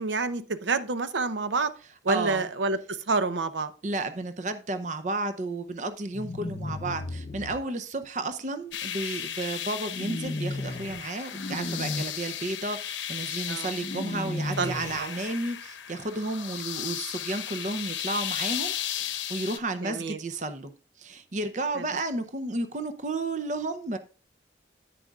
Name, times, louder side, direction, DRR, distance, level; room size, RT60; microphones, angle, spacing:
voice 1, 0.0-1.7 2.0-3.7 13.5-13.7 14.6-14.7 15.0-15.2 19.8-20.2 21.8-21.9, right 3 dB, 80° right, 0.7 m, -28 dB
voice 2, 2.1-2.5 3.8-20.7 21.0-24.0, right 2 dB, 40° right, 0.6 m, -32 dB
sound 1, 6.1-7.6 9.9-11.0 11.3-12.0 13.8-15.0, left 2 dB, 40° left, 0.5 m, -34 dB
sound 2, 8.7-19.6, left 10 dB, 90° left, 0.8 m, -35 dB
10.0 x 9.2 x 2.4 m
head